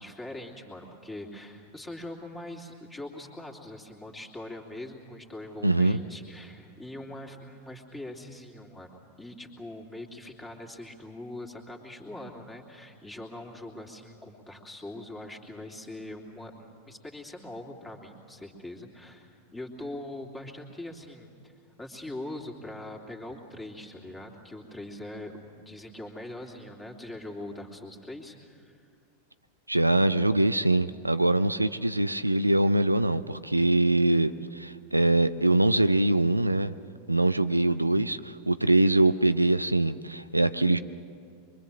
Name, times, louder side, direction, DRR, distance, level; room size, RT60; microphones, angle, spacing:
voice 1, 0.0-28.9 37.7-37.8, left 1 dB, 10° left, 0 dB, 3.1 m, -42 dB
voice 2, 5.6-6.0 29.7-36.7 37.1-40.8, right 2 dB, 85° right, 12 dB, 0.5 m, -23 dB
24.5 x 24.0 x 7.5 m, 2.3 s
figure-of-eight pair, 90°, 0 cm